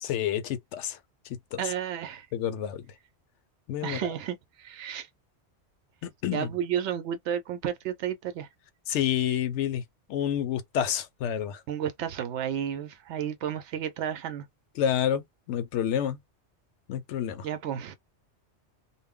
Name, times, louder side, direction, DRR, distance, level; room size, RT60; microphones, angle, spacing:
voice 1, 0.0-1.0 1.5-1.6 2.3-2.8 3.7-4.0 6.0-6.5 8.9-9.8 10.1-11.6 14.8-16.2 16.9-17.5, left 9 dB, 85° left, 0.9 m, -29 dB
voice 2, 1.6-2.3 3.8-5.1 6.3-8.5 11.7-14.4 17.4-18.0, right 9 dB, 85° right, 0.9 m, -32 dB
2.2 x 2.0 x 3.5 m
omnidirectional pair, 1.2 m